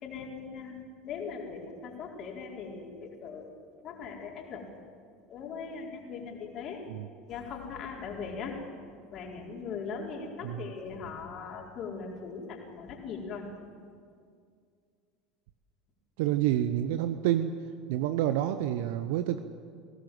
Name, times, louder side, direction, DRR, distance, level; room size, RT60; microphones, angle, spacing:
voice 1, 0.0-3.5 3.8-4.7 5.3-6.8 7.3-8.6 9.1-13.5, left 5 dB, 45° left, -1 dB, 4.6 m, -40 dB
voice 2, 16.2-17.6 17.9-19.4, right 12 dB, 65° right, 10 dB, 0.8 m, -28 dB
21.0 x 18.0 x 7.9 m, 2.2 s
figure-of-eight pair, 75°, 0 cm